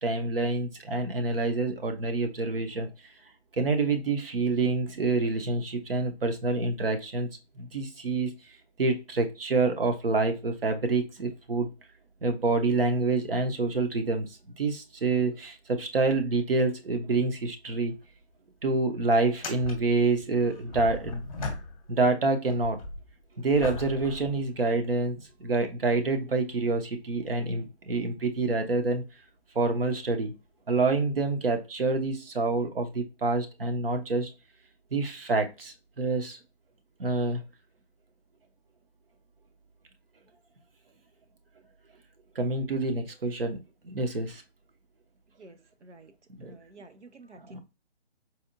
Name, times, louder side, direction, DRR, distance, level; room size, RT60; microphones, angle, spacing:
voice 1, 0.0-2.9 3.5-7.3 7.6-8.3 8.8-11.7 12.2-14.3 14.6-17.9 18.6-21.3 21.9-22.8 23.4-29.0 29.5-30.3 30.7-34.3 34.9-36.4 37.0-37.4 42.3-43.6 43.8-44.4 46.4-46.5 47.5-47.6, right 3 dB, 55° right, 0.8 m, -27 dB
sound 1, 17.9-18.0 18.3-18.4 19.2-22.1 22.4-25.1 25.8-25.9 30.0-30.2 31.5-31.6, left 2 dB, 30° left, 0.8 m, -39 dB
voice 2, 45.4-46.1 46.4-47.6, right 2 dB, 90° right, 0.7 m, -51 dB
4.2 x 2.3 x 2.5 m
figure-of-eight pair, 155°, 34 cm